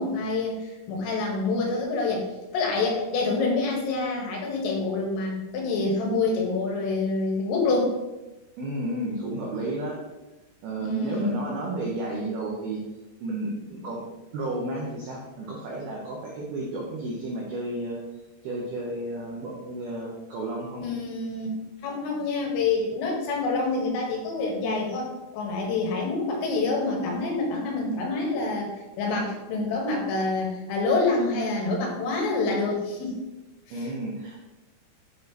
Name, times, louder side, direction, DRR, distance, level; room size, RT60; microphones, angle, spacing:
voice 1, 0.0-2.3 2.5-7.9 10.8-11.5 20.8-21.5 21.8-25.1 25.3-28.7 29.0-33.2, left 3 dB, 80° left, -1 dB, 3.8 m, -27 dB
voice 2, 8.6-10.0 10.6-12.8 13.2-14.0 14.3-18.0 18.4-20.8 33.7-34.4, right 2 dB, 90° right, -3 dB, 2.1 m, -32 dB
8.9 x 5.2 x 3.0 m, 1.0 s
omnidirectional pair, 6.0 m